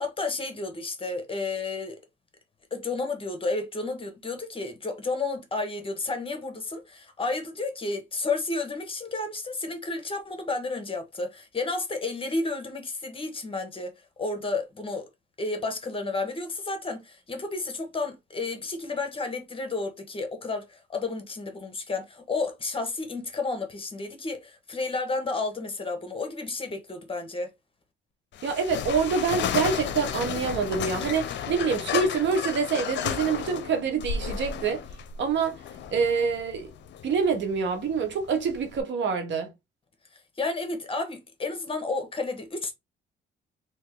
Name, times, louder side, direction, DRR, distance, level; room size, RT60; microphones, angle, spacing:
voice 1, 0.0-2.0 2.7-13.9 14.2-15.0 15.4-27.5 40.1-42.7, left 3 dB, 25° left, 1.2 m, -31 dB
sound 1, 28.3-38.8, left 8 dB, 65° left, 0.6 m, -33 dB
voice 2, 28.4-34.8 35.2-35.5 35.9-36.7 37.0-39.5, right 5 dB, 65° right, 1.1 m, -26 dB
3.0 x 2.9 x 3.7 m
cardioid pair, 90°, 20 cm